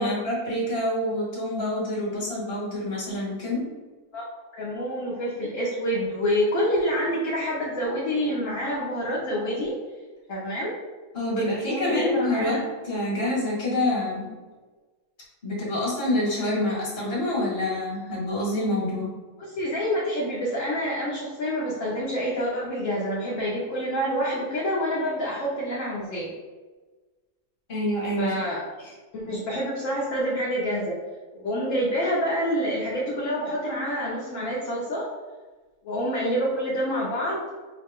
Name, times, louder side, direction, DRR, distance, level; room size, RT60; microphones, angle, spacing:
voice 1, 0.0-3.7 11.1-14.3 15.4-19.2 27.7-28.3 28.8-28.9, left 1 dB, 40° left, -5 dB, 1.5 m, -27 dB
voice 2, 4.5-9.7 10.3-10.7 11.3-12.6 19.5-26.3 28.2-28.6 29.1-31.0 31.4-35.1 35.8-37.4, equal, 60° left, -6 dB, 1.1 m, -27 dB
4.8 x 2.1 x 3.5 m, 1.3 s
omnidirectional pair, 1.7 m